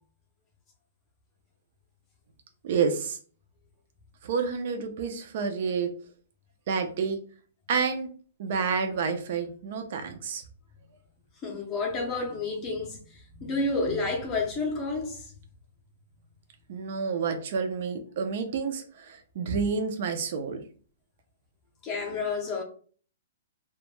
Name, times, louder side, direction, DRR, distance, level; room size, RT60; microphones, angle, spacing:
voice 1, 2.6-3.2 4.2-5.9 6.7-7.2 7.7-8.1 8.4-10.4 16.7-20.6, right 5 dB, 45° right, 0.3 m, -29 dB
voice 2, 11.4-13.0 13.4-15.3 21.8-22.6, left 3 dB, 20° left, 0.5 m, -30 dB
2.1 x 2.0 x 2.9 m
hypercardioid pair, 170°, 0 cm